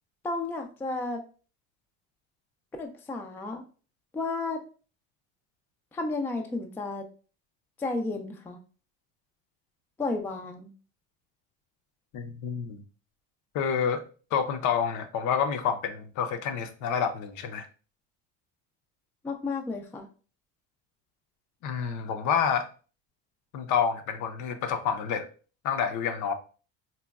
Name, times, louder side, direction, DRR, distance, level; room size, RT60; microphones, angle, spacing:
voice 1, 0.2-1.2 2.8-3.6 4.1-4.6 5.9-7.1 7.8-8.6 10.0-10.7 19.2-20.1, left 3 dB, 5° left, 4 dB, 0.3 m, -32 dB
voice 2, 12.1-12.8 13.5-14.0 14.3-17.7 21.6-22.7 23.5-25.3 25.6-26.3, left 7 dB, 60° left, 8 dB, 0.6 m, -28 dB
4.0 x 2.2 x 2.2 m, 0.37 s
supercardioid pair, 105°, 34 cm